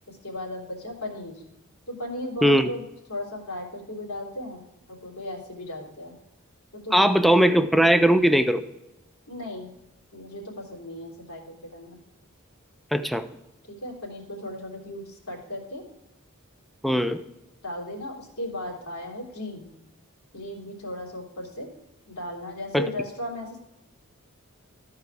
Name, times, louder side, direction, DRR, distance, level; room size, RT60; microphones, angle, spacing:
voice 1, 0.1-1.4 1.9-2.8 3.1-4.6 4.9-6.1 6.7-7.1 9.3-9.7 10.1-12.0 13.7-15.8 17.6-19.7 20.3-21.7 22.1-23.6, left 1 dB, 85° left, -2 dB, 3.0 m, -36 dB
voice 2, 6.9-8.6 12.9-13.2 16.8-17.2 22.7-22.9, equal, ahead, 11 dB, 0.4 m, -19 dB
14.0 x 4.8 x 4.7 m, 0.90 s
head